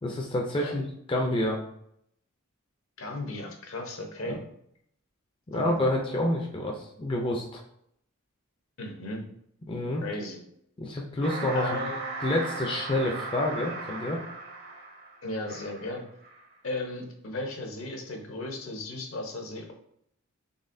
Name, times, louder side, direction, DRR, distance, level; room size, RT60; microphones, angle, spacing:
voice 1, 0.0-0.8 1.1-1.6 4.2-4.4 5.5-7.6 9.7-10.0 10.8-11.8 12.2-14.2, left 1 dB, 25° left, 0 dB, 0.4 m, -28 dB
voice 2, 3.0-4.4 5.5-5.7 8.8-9.2 10.0-10.4 11.5-12.0 15.2-16.0 16.6-19.7, left 2 dB, 70° left, 2 dB, 0.9 m, -35 dB
sound 1, 11.2-16.0 16.2-16.5, right 4 dB, 50° right, 0.7 m, -37 dB
4.0 x 3.3 x 2.6 m, 0.70 s
head